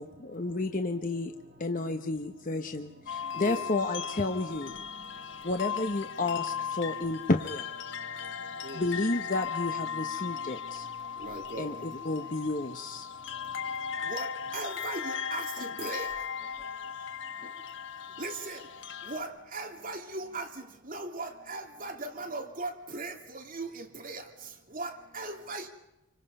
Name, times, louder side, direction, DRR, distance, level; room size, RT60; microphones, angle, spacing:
voice 1, 0.0-1.3 1.6-4.8 5.4-7.7 8.7-10.9 11.6-13.1, left 2 dB, 40° left, 0.9 m, -31 dB
sound 1, 3.1-19.2, left 7 dB, 60° left, 1.1 m, -37 dB
voice 2, 11.2-11.7 14.1-14.3 14.5-16.1 18.2-18.6 19.1-20.4 20.9-24.2 24.7-25.7, right 2 dB, 40° right, 2.8 m, -38 dB
voice 3, 16.4-18.2, equal, 25° right, 6.3 m, -59 dB
28.0 x 24.5 x 5.5 m
head